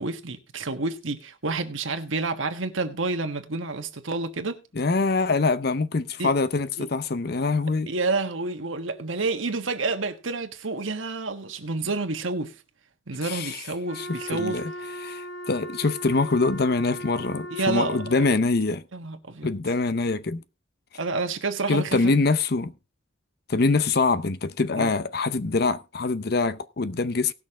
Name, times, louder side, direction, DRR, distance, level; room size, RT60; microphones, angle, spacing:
voice 1, 0.0-4.6 6.2-6.3 6.8-6.9 7.9-12.5 13.1-14.6 17.5-18.0 18.9-19.5 21.0-22.1 24.8-24.9, right 3 dB, 80° right, 1.4 m, -29 dB
voice 2, 4.7-7.9 13.2-13.6 14.0-14.7 15.0-18.8 19.4-20.4 21.7-22.7 23.5-27.3, left 3 dB, 50° left, 0.7 m, -24 dB
Wind instrument woodwind instrument, 13.9-18.5, equal, 70° left, 4.0 m, -38 dB
18.5 x 6.4 x 3.7 m
head